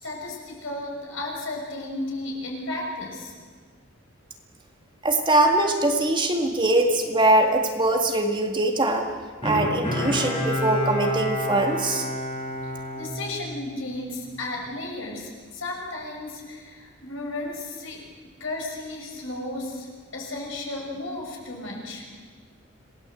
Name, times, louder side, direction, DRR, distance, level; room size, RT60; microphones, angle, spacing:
voice 1, 0.0-3.3 12.6-18.0 18.4-19.9 20.1-22.0, left 2 dB, 65° left, -1 dB, 6.2 m, -34 dB
voice 2, 5.0-9.1 9.4-12.1, right 2 dB, 20° right, 3 dB, 2.0 m, -22 dB
Bowed string instrument, 9.4-13.9 14.4-14.5, left 1 dB, 25° left, 6.4 m, -29 dB
27.0 x 18.0 x 8.0 m, 1.5 s
head